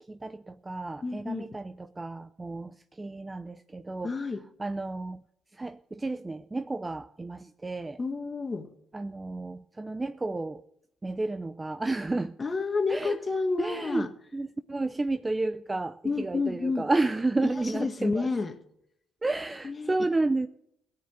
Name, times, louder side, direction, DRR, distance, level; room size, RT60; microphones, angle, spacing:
voice 1, 0.1-4.1 4.6-5.2 5.5-8.0 8.9-10.6 11.0-12.3 12.9-13.2 13.6-14.1 14.3-18.3 19.2-20.5, right 2 dB, 20° right, 0.6 m, -31 dB
voice 2, 1.0-1.6 4.0-4.4 8.0-8.7 12.4-14.1 16.0-16.9 17.4-18.6 19.6-20.1, left 4 dB, 35° left, 1.7 m, -30 dB
17.5 x 6.8 x 8.1 m
hypercardioid pair, 55°, 0 cm